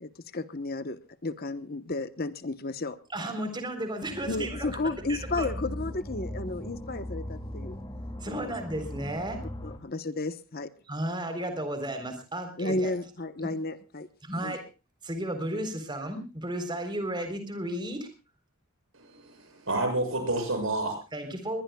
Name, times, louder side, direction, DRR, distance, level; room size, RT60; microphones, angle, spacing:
voice 1, 0.0-3.0 4.3-7.8 8.2-8.5 9.6-10.7 12.6-14.1 14.4-14.6, left 2 dB, 45° left, 12 dB, 1.1 m, -33 dB
voice 2, 3.1-4.7 5.1-5.5 8.2-9.4 10.9-12.9 13.4-13.5 14.2-14.7 15.0-18.1 21.1-21.6, right 1 dB, 20° right, 7 dB, 3.8 m, -33 dB
sound 1, 4.1-9.8, left 1 dB, 20° left, 2.5 m, -39 dB
voice 3, 18.9-21.0, right 2 dB, 65° right, 5 dB, 7.4 m, -29 dB
22.0 x 21.0 x 2.3 m, 0.32 s
head